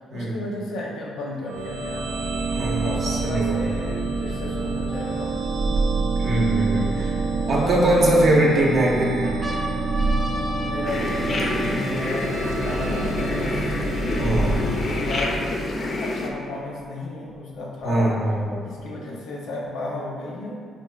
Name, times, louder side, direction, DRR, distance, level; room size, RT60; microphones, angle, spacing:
voice 1, 0.1-2.2 2.8-5.3 7.4-7.5 10.3-13.8 14.2-15.4 16.0-18.1 18.6-20.6, left 2 dB, 85° left, -2 dB, 0.6 m, -34 dB
sound 1, 1.5-16.2, right 3 dB, 85° right, 0.3 m, -27 dB
voice 2, 2.5-3.6 6.2-7.2 7.5-9.3 14.2-14.6 17.8-18.6, right 1 dB, 55° right, -3 dB, 0.7 m, -21 dB
sound 2, 5.7-6.9 7.7-8.4 8.9-9.0 9.2-14.9 15.6-15.7 15.8-16.8 17.8-18.8, equal, 10° right, 0.5 m, -36 dB
sound 3, 10.9-16.3, left 2 dB, 50° left, 0.4 m, -28 dB
4.2 x 2.5 x 2.3 m, 2.1 s
cardioid pair, 90°, 0 cm